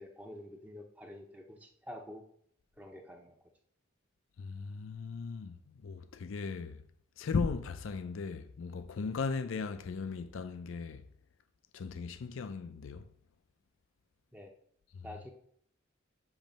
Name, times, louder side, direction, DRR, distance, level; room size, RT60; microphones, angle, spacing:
voice 1, 0.0-2.2 2.8-3.4 14.3-14.5 15.0-15.3, left 1 dB, 10° right, 0.6 m, -48 dB
voice 2, 4.4-6.8 7.2-11.1 11.7-13.1 14.9-15.1, left 4 dB, 75° left, 0.4 m, -37 dB
7.1 x 3.1 x 5.2 m
head